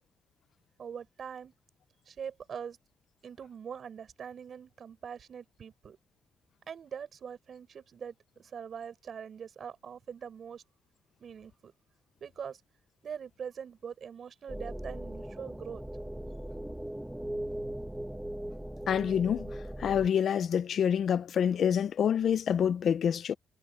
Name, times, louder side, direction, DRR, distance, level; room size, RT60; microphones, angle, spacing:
voice 1, 0.8-1.5 2.1-2.8 3.2-6.0 6.7-10.6 11.2-11.7 12.2-12.6 13.0-15.9, right 7 dB, 55° right, 7.2 m, -43 dB
sound 1, 14.5-20.1, right 1 dB, 5° right, 1.2 m, -39 dB
voice 2, 18.9-19.5 19.8-23.3, left 8 dB, 60° left, 0.8 m, -27 dB
cardioid pair, 90°, 0 cm